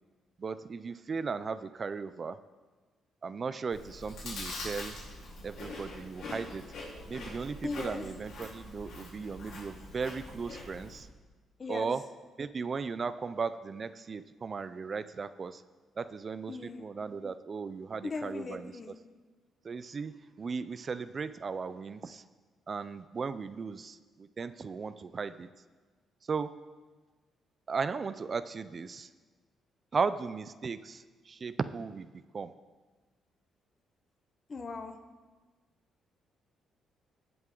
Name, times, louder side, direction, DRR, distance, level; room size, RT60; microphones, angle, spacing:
voice 1, 0.4-2.4 3.2-4.9 5.4-6.6 7.1-11.1 11.7-12.0 12.4-15.6 16.0-18.9 19.6-22.2 22.7-25.5 26.2-26.5 27.7-29.1 29.9-32.5, right 5 dB, 40° right, 13 dB, 0.5 m, -36 dB
Chewing mastication, 3.7-11.0, left 2 dB, 75° left, 3.9 m, -44 dB
voice 2, 7.6-8.0 11.6-11.9 16.5-16.9 18.0-19.0 34.5-35.0, left 3 dB, 40° left, 7 dB, 1.2 m, -38 dB
18.0 x 7.8 x 3.8 m, 1.3 s
cardioid pair, 90°, 0 cm